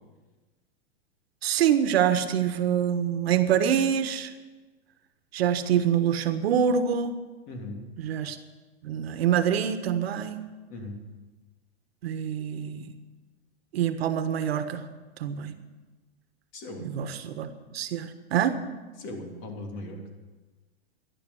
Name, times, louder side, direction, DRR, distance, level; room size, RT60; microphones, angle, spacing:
voice 1, 1.4-4.3 5.3-7.2 8.0-8.4 8.8-10.4 12.0-12.9 13.7-14.8 15.2-15.6 16.8-17.5 17.7-18.6, right 8 dB, 75° right, 9 dB, 1.4 m, -25 dB
voice 2, 7.5-7.8 10.7-11.0 16.5-16.9 19.0-20.1, left 1 dB, 40° left, 2 dB, 3.2 m, -38 dB
13.5 x 11.0 x 7.2 m, 1.3 s
hypercardioid pair, 140°, 31 cm